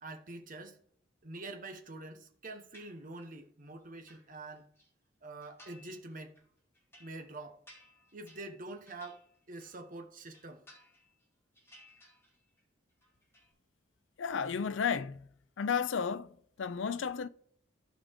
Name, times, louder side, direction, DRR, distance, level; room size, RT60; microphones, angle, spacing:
voice 1, 0.0-0.8 1.2-4.7 5.2-6.4 7.0-7.6 8.1-9.2 9.5-10.6, right 2 dB, 45° right, 1.2 m, -46 dB
sound 1, 2.7-3.4 3.8-4.9 5.4-6.0 6.4-9.9 10.2-11.2 11.5-12.6 12.9-13.5, left 1 dB, 15° left, 3.4 m, -60 dB
voice 2, 14.2-15.3 15.6-17.3, left 6 dB, 85° left, 0.5 m, -33 dB
14.5 x 5.1 x 3.6 m
head